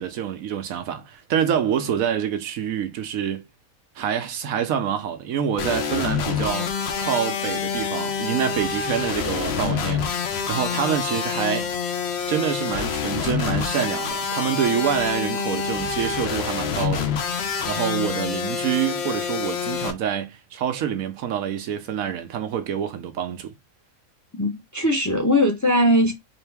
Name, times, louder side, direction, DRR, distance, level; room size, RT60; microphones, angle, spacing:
voice 1, 0.0-3.4 4.0-10.1 10.5-11.7 12.3-17.1 17.7-23.5, right 9 dB, 85° right, 1.1 m, -26 dB
sound 1, 5.6-19.9, left 6 dB, 60° left, 0.8 m, -27 dB
voice 2, 24.3-26.1, equal, 20° left, 0.6 m, -20 dB
3.9 x 2.7 x 3.4 m
omnidirectional pair, 1.4 m